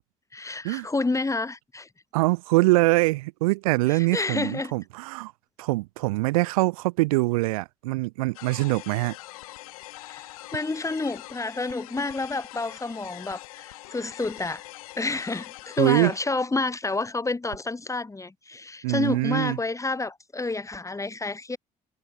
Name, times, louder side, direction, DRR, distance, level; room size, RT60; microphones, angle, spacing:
voice 1, 0.3-1.9 3.9-4.7 10.1-10.2 10.5-14.6 15.0-21.6, left 3 dB, 15° left, 1.5 m, -29 dB
voice 2, 2.1-5.3 5.6-9.1 15.8-16.1 18.8-19.6, right 22 dB, 70° right, 0.6 m, -23 dB
sound 1, 8.3-16.2, left 18 dB, 70° left, 1.4 m, -43 dB
figure-of-eight pair, 45°, 19 cm